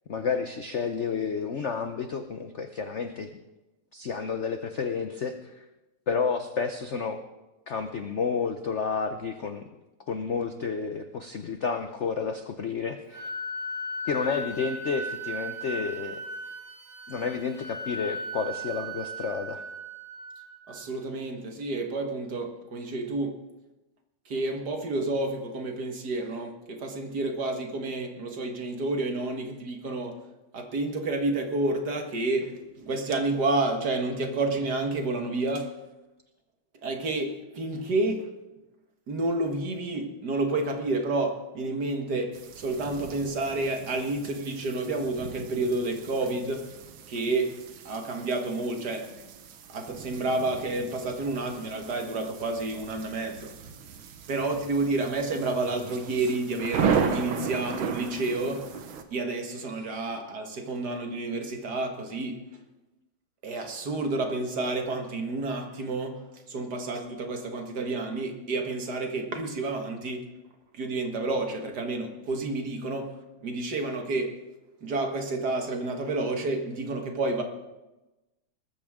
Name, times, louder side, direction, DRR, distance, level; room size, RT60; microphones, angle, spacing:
voice 1, 0.1-3.3 3.9-5.6 6.1-7.2 7.7-9.7 10.1-13.3 14.0-16.2 17.1-19.6, left 5 dB, 65° left, 7 dB, 0.7 m, -30 dB
Wind instrument woodwind instrument, 13.1-20.9, equal, 40° left, 3.3 m, -37 dB
voice 2, 20.7-23.4 24.3-30.2 30.5-35.7 36.8-38.3 39.1-46.7 47.1-49.1 49.7-53.5 54.3-58.7 59.1-62.4 63.4-70.3 70.7-73.1 73.4-74.4 74.8-77.4, right 2 dB, 55° right, 4 dB, 2.1 m, -30 dB
sound 1, 42.3-59.0, right 6 dB, 85° right, 1.9 m, -36 dB
20.0 x 14.0 x 3.7 m, 1.0 s
omnidirectional pair, 2.2 m